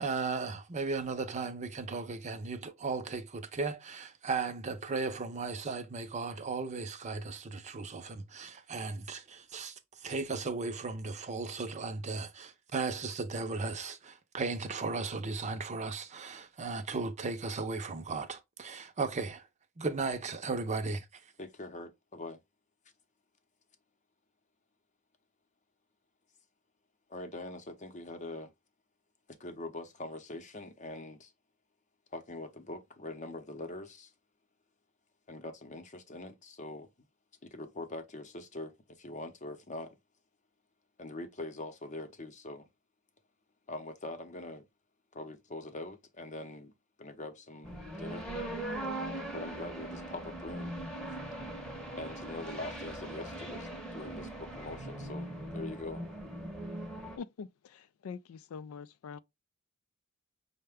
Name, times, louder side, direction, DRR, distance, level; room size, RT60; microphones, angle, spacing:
voice 1, 0.0-19.5 19.8-21.1, right 4 dB, 35° right, 0.6 m, -36 dB
voice 2, 21.4-22.4 27.1-28.5 29.3-31.3 32.1-34.1 35.3-36.9 37.4-40.0 41.0-42.7 43.7-44.7 45.1-46.7 47.0-48.3 49.3-50.8 52.0-56.1, left 2 dB, 35° left, 0.7 m, -43 dB
sound 1, 47.6-57.2, right 1 dB, 5° left, 0.8 m, -40 dB
voice 3, 57.2-59.2, left 6 dB, 70° left, 0.3 m, -44 dB
5.6 x 2.2 x 3.4 m
head